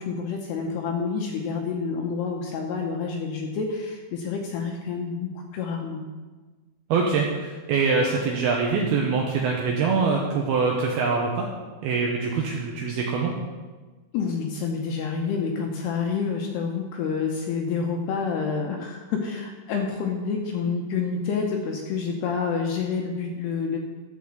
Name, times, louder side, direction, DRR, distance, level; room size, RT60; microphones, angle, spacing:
voice 1, 0.0-6.0 14.1-23.8, left 5 dB, 75° left, 1 dB, 2.5 m, -28 dB
voice 2, 6.9-11.5 11.8-13.3, right 4 dB, 80° right, -1 dB, 2.3 m, -24 dB
12.5 x 4.9 x 7.2 m, 1.3 s
omnidirectional pair, 5.5 m